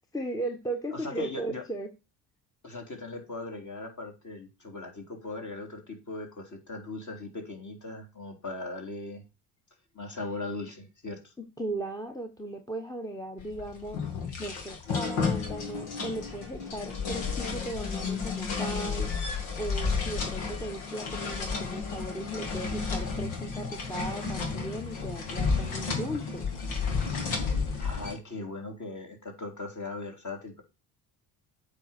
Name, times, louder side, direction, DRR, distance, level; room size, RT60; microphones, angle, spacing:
voice 1, 0.0-1.9 11.4-14.0 14.4-19.1 19.6-26.5, right 1 dB, 5° left, 5 dB, 1.2 m, -37 dB
voice 2, 0.9-1.6 2.6-9.2 9.9-11.3 27.8-30.6, left 2 dB, 35° left, 3 dB, 3.4 m, -39 dB
sound 1, 13.4-28.1, left 5 dB, 70° left, 2.6 m, -32 dB
8.1 x 4.4 x 6.6 m, 0.28 s
hypercardioid pair, 55°, 50 cm